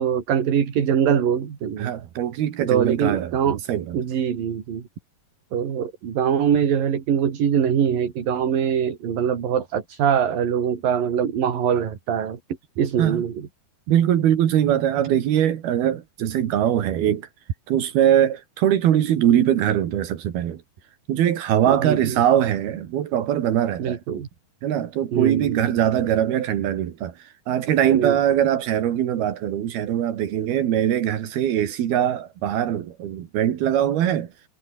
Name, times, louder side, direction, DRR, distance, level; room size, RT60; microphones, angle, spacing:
voice 1, 0.0-1.9 2.6-3.6 3.9-4.8 5.5-12.4 12.8-13.3 21.6-22.2 23.8-24.3 25.1-25.8 27.9-28.2, right 8 dB, 65° right, 4.5 m, -23 dB
voice 2, 1.8-4.0 13.0-13.2 13.9-17.3 17.7-20.6 21.1-24.0 24.6-34.3, right 10 dB, 85° right, 3.9 m, -22 dB
omnidirectional pair, 4.3 m